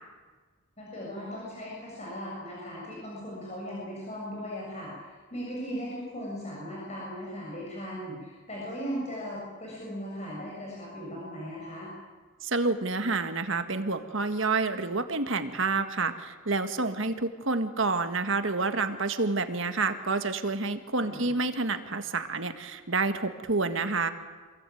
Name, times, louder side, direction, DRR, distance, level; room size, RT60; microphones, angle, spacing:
voice 1, 0.8-11.9 21.0-21.3, equal, 30° left, -4 dB, 7.2 m, -38 dB
voice 2, 12.4-24.1, right 3 dB, 60° right, 8 dB, 1.7 m, -28 dB
27.5 x 21.5 x 9.3 m, 1.4 s
head